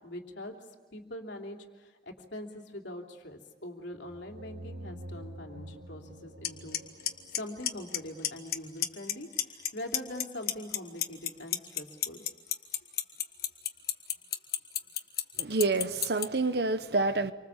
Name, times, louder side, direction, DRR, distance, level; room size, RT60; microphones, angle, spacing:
voice 1, 0.0-0.5 0.9-6.8 7.3-12.2, left 1 dB, 85° left, 2 dB, 3.2 m, -43 dB
sound 1, 4.0-8.6, right 1 dB, 85° right, 4.6 m, -47 dB
Clock, 6.4-6.5 6.7-7.1 7.3-8.0 8.2-8.6 8.8-9.7 9.9-16.2, left 12 dB, 55° left, 1.6 m, -28 dB
voice 2, 15.4-17.3, right 3 dB, 65° right, 11 dB, 1.1 m, -28 dB
29.0 x 24.5 x 7.4 m, 1.3 s
head